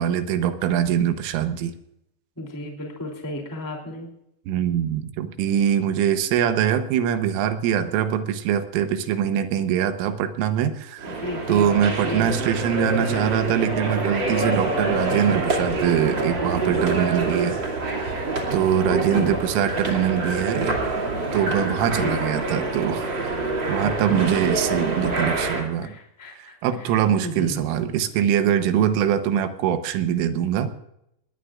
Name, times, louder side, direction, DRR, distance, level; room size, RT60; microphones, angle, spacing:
voice 1, 0.0-1.7 4.5-11.2 11.5-17.6 18.5-20.8 21.3-23.1 23.7-25.9 26.4-30.7, right 9 dB, 80° right, 9 dB, 3.5 m, -23 dB
voice 2, 2.3-4.1 11.1-11.7 12.0-12.3 18.9-19.4 22.0-22.2 23.8-24.6 25.1-26.5 27.2-27.6, left 1 dB, 5° left, 0 dB, 1.4 m, -33 dB
sound 1, 11.0-25.6, right 2 dB, 35° right, 2.2 m, -26 dB
21.0 x 18.0 x 2.5 m, 0.79 s
omnidirectional pair, 5.9 m